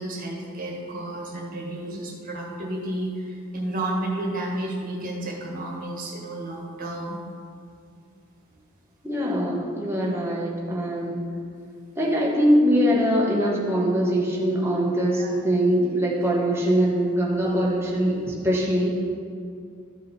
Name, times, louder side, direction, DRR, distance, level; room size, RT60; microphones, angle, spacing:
voice 1, 0.0-7.2 15.2-15.3, right 1 dB, 40° right, -2 dB, 1.7 m, -31 dB
voice 2, 9.0-11.2 11.9-18.9, equal, 10° right, -4 dB, 1.4 m, -22 dB
13.0 x 5.0 x 4.3 m, 2.4 s
head